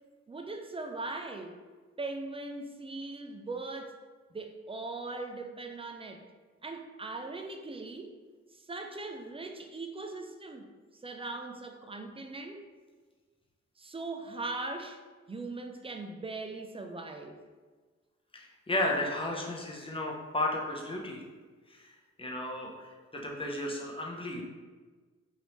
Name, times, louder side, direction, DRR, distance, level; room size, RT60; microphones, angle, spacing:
voice 1, 0.3-1.6 2.0-3.9 4.3-6.2 6.6-8.1 8.5-10.7 10.9-12.6 13.8-15.0 15.3-17.4, right 3 dB, 20° right, 4 dB, 0.3 m, -40 dB
voice 2, 18.3-21.2 21.7-21.9 22.2-22.9 23.1-24.4, left 1 dB, 20° left, -1 dB, 0.7 m, -33 dB
3.2 x 2.7 x 2.9 m, 1.4 s
cardioid pair, 55°, 29 cm